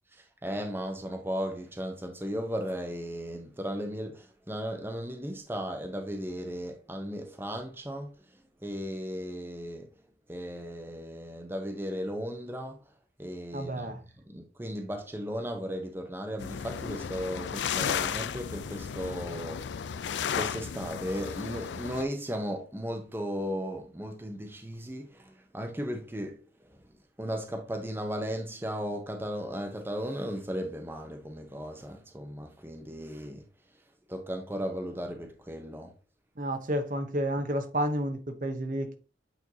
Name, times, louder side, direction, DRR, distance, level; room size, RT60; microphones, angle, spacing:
voice 1, 0.1-8.1 8.6-9.9 10.3-12.8 13.2-14.0 14.3-19.6 20.3-26.4 27.2-33.4 34.1-35.9, equal, 10° right, 0.8 m, -36 dB
voice 2, 13.5-14.0 36.4-39.0, right 1 dB, 45° right, 0.8 m, -31 dB
sound 1, 16.4-22.0, left 7 dB, 85° left, 0.4 m, -34 dB
8.3 x 4.5 x 2.8 m
head